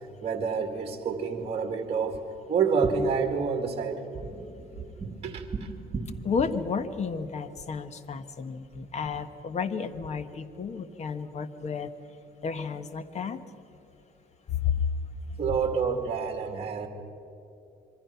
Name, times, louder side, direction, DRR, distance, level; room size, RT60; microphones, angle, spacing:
voice 1, 0.2-2.2 2.5-6.0 15.4-16.9, right 5 dB, 35° right, 5 dB, 2.3 m, -29 dB
voice 2, 6.2-11.9 12.4-13.4 14.5-14.8, left 6 dB, 40° left, 11 dB, 1.4 m, -32 dB
26.5 x 23.5 x 5.8 m, 2.8 s
cardioid pair, 110°, 17 cm